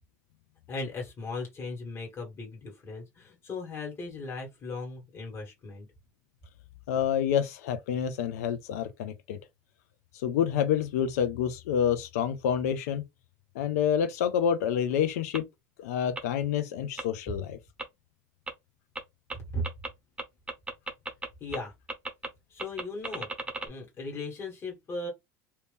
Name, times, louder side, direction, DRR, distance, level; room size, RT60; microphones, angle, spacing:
voice 1, 0.7-5.9 19.5-19.7 21.4-21.7 22.5-23.3 23.6-25.1, left 2 dB, 30° left, 1.7 m, -37 dB
voice 2, 6.9-9.4 10.1-13.0 13.5-15.5 15.8-17.6, left 8 dB, 90° left, 0.5 m, -28 dB
sound 1, 15.3-15.4 16.2-16.3 17.0-17.1 17.8-17.9 18.5-18.6 18.9-19.0 19.3-19.4 19.6-19.9 20.2-21.3 21.5-21.6 21.9-22.3 22.6-23.7, right 2 dB, 10° right, 1.0 m, -34 dB
2.8 x 2.7 x 3.5 m
supercardioid pair, 110°, 8 cm